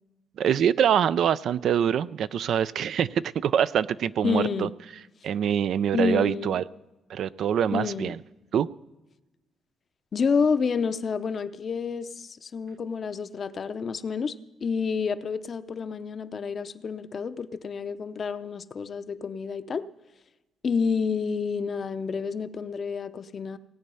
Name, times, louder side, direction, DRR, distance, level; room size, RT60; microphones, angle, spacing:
voice 1, 0.4-4.7 5.2-6.6 7.1-8.2 8.5-8.7, right 9 dB, 65° right, 16 dB, 0.4 m, -24 dB
voice 2, 4.2-4.7 5.9-6.6 7.7-8.2 10.1-14.3 14.6-19.8 20.6-23.6, left 5 dB, 45° left, 12 dB, 0.6 m, -29 dB
18.5 x 8.4 x 5.5 m, 1.0 s
cardioid pair, 95°, 0 cm